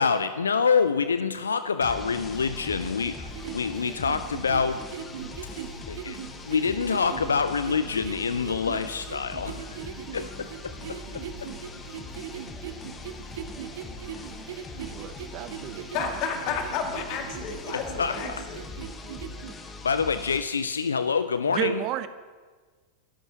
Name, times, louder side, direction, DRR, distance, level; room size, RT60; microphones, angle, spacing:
voice 1, 0.0-4.8 5.5-6.2 6.5-9.8 10.1-11.5 18.0-18.4 19.8-21.8, left 5 dB, 70° left, 12 dB, 0.5 m, -26 dB
sound 1, 1.8-20.4, left 3 dB, 20° left, 1.4 m, -42 dB
sound 2, 2.2-18.9, right 4 dB, 75° right, 2.0 m, -50 dB
sound 3, 3.0-19.5, right 9 dB, 55° right, 1.1 m, -40 dB
voice 2, 14.9-16.1 21.5-22.1, right 14 dB, 40° right, 14 dB, 0.6 m, -32 dB
voice 3, 15.9-18.6, left 6 dB, 40° left, 3 dB, 2.5 m, -31 dB
27.5 x 13.5 x 3.1 m, 1.5 s
figure-of-eight pair, 90°, 0 cm